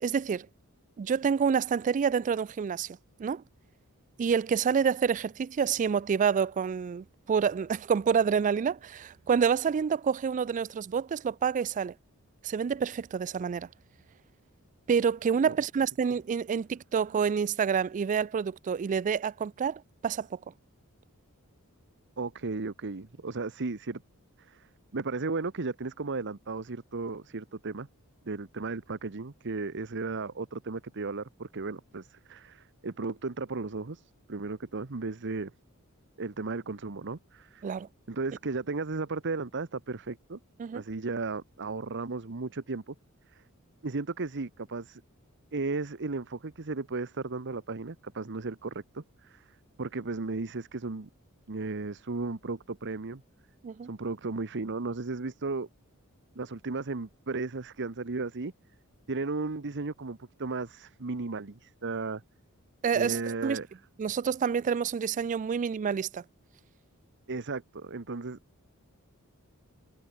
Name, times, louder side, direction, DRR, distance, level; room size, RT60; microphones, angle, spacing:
voice 1, 0.0-0.5 1.0-3.4 4.2-11.9 12.4-13.7 14.9-20.4 37.6-37.9 40.6-40.8 53.6-53.9 62.8-63.6 64.0-66.2, right 6 dB, 35° right, 0.3 m, -28 dB
voice 2, 22.2-24.0 24.4-27.9 28.2-35.5 36.2-37.6 38.1-40.4 40.7-42.9 43.3-43.4 43.8-45.0 45.5-49.5 49.8-51.1 51.5-53.2 53.8-55.7 56.3-58.5 59.1-62.2 62.9-63.7 67.3-68.4, right 3 dB, 55° right, 1.0 m, -35 dB
head